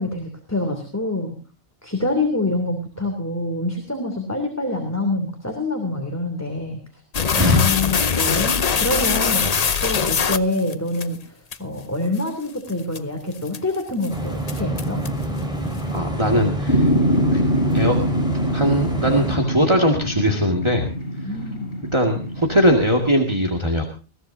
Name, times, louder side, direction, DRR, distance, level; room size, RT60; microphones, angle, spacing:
voice 1, 0.0-1.3 1.8-6.8 7.3-15.0 21.2-21.7, left 2 dB, 15° left, 4 dB, 2.9 m, -26 dB
sound 1, 7.1-11.0 11.5-11.6 12.2-12.3 12.7-13.0 13.5-13.8 14.0-14.1 14.5-15.2, left 6 dB, 40° left, 0.8 m, -22 dB
sound 2, 14.1-19.4, right 1 dB, 5° right, 5.0 m, -27 dB
voice 2, 15.9-16.9 17.3-17.4 17.7-18.0 18.5-20.9 21.2-21.3 21.9-23.9, equal, 25° right, 1 dB, 2.2 m, -20 dB
sound 3, 16.7-23.1, equal, 60° left, 3.3 m, -24 dB
21.0 x 16.5 x 2.7 m, 0.35 s
omnidirectional pair, 1.1 m